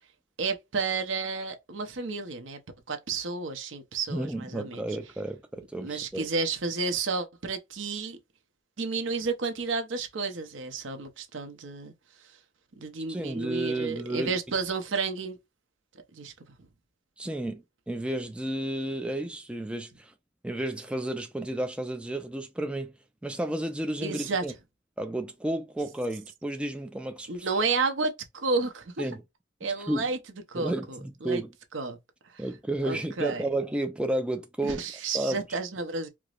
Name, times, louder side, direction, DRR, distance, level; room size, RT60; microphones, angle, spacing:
voice 1, 0.4-2.6 2.9-4.8 5.8-8.2 8.8-11.9 12.8-15.4 16.1-16.3 24.0-24.4 27.3-29.1 29.6-30.2 30.5-31.4 31.7-32.0 32.3-32.4 32.8-33.5 34.6-36.1, right 4 dB, 70° right, 0.7 m, -31 dB
voice 2, 4.1-6.3 13.1-14.4 17.2-20.1 20.4-22.9 23.2-24.5 25.0-27.5 29.0-29.2 29.6-30.1 30.6-31.5 32.4-34.8 35.1-35.4, right 1 dB, 5° right, 0.4 m, -32 dB
4.6 x 2.0 x 2.4 m
head